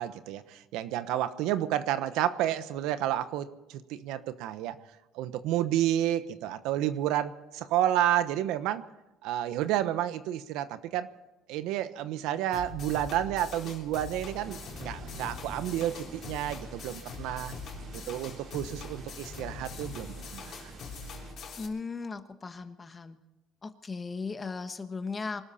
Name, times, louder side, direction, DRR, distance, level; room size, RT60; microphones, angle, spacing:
voice 1, 0.0-4.8 5.1-8.9 9.2-11.1 11.5-17.6 17.9-20.7, right 12 dB, 80° right, 12 dB, 1.0 m, -30 dB
sound 1, 12.5-21.7, left 4 dB, 50° left, 3.7 m, -42 dB
sound 2, 14.4-21.3, right 3 dB, 55° right, 4.2 m, -49 dB
voice 2, 21.6-23.2 23.6-25.4, left 4 dB, 25° left, 9 dB, 1.3 m, -37 dB
24.5 x 13.0 x 4.3 m, 1.0 s
cardioid pair, 120°, 0 cm